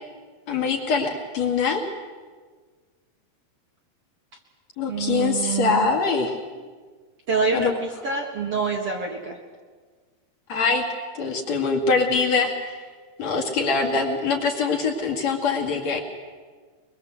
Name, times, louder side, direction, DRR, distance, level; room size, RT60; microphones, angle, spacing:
voice 1, 0.5-1.8 4.8-6.4 7.5-7.7 10.5-10.8 11.1-12.7 13.2-16.0, left 4 dB, 45° left, 1 dB, 3.1 m, -23 dB
voice 2, 4.9-5.9 7.3-9.4, right 4 dB, 50° right, 1 dB, 2.2 m, -26 dB
23.0 x 23.0 x 8.0 m, 1.5 s
omnidirectional pair, 4.6 m